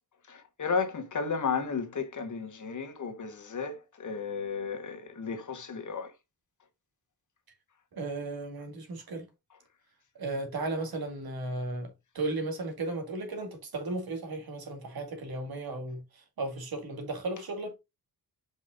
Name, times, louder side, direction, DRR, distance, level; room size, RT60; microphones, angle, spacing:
voice 1, 0.3-6.1, left 5 dB, 50° left, 1.6 m, -33 dB
voice 2, 7.9-9.2 10.2-11.9 12.1-16.0 16.4-17.8, right 2 dB, 70° right, 2.2 m, -35 dB
5.3 x 5.3 x 3.8 m
wide cardioid pair, 115°, 38 cm